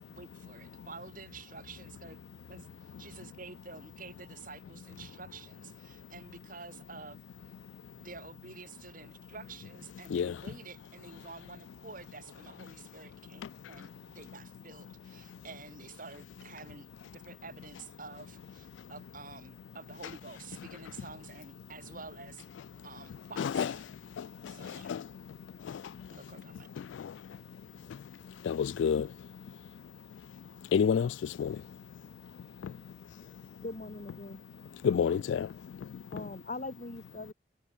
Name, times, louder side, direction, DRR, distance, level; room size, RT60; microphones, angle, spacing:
voice 1, 0.1-2.2 2.5-7.2 8.0-16.9 17.1-22.4 22.8-23.8 24.5-24.9 26.1-26.7, right 4 dB, 45° right, 1.4 m, -49 dB
voice 2, 23.4-23.7 24.2-24.3 24.6-25.0 28.4-29.1 30.7-31.6 34.8-35.5, left 7 dB, 75° left, 0.3 m, -28 dB
voice 3, 33.6-34.4 36.1-37.3, left 2 dB, 40° left, 2.2 m, -40 dB
head